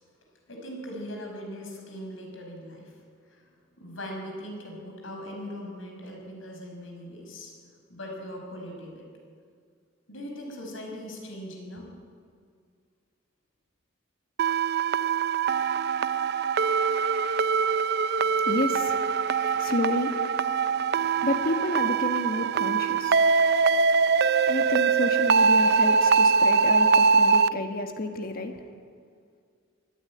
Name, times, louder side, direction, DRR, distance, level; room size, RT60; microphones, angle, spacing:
voice 1, 0.5-2.9 3.3-3.4 3.8-7.5 7.9-9.1 10.1-11.9, equal, 85° left, 1 dB, 5.3 m, -40 dB
sound 1, 14.4-27.5, right 5 dB, 55° right, 0.5 m, -23 dB
voice 2, 18.2-19.0 19.6-20.1 21.2-23.2 24.5-28.6, left 2 dB, 50° left, 5 dB, 1.5 m, -30 dB
23.0 x 12.5 x 9.7 m, 2.1 s
head